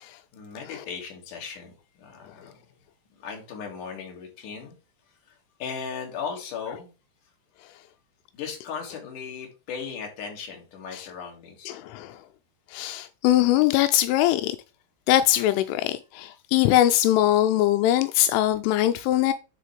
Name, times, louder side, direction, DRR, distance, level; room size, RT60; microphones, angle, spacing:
voice 1, 0.3-2.6 3.2-4.7 5.3-6.9 8.3-11.8, left 6 dB, 50° left, 3.3 m, -37 dB
voice 2, 11.7-12.2 12.7-14.6 15.1-19.3, left 13 dB, 85° left, 3.1 m, -22 dB
10.5 x 4.5 x 3.4 m
omnidirectional pair, 5.6 m